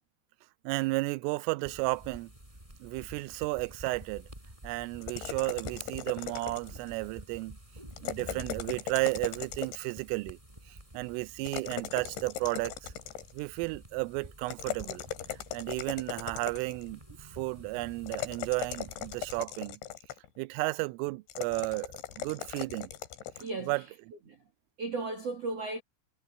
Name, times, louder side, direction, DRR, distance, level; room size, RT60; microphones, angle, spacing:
voice 1, 0.7-2.3 2.8-4.3 4.6-7.6 8.0-10.4 10.7-12.9 13.3-15.1 15.5-19.8 20.4-22.9 23.7-23.8, right 24 dB, 85° right, 3.2 m, -33 dB
sound 1, 1.6-19.4, right 1 dB, 5° right, 5.7 m, -49 dB
sound 2, 5.0-6.9 7.9-10.0 11.5-13.4 14.5-16.9 18.1-20.3 21.3-23.5, left 10 dB, 70° left, 4.2 m, -39 dB
voice 2, 23.4-23.8 24.3-24.4 24.8-25.8, right 3 dB, 70° right, 1.5 m, -35 dB
omnidirectional pair, 5.7 m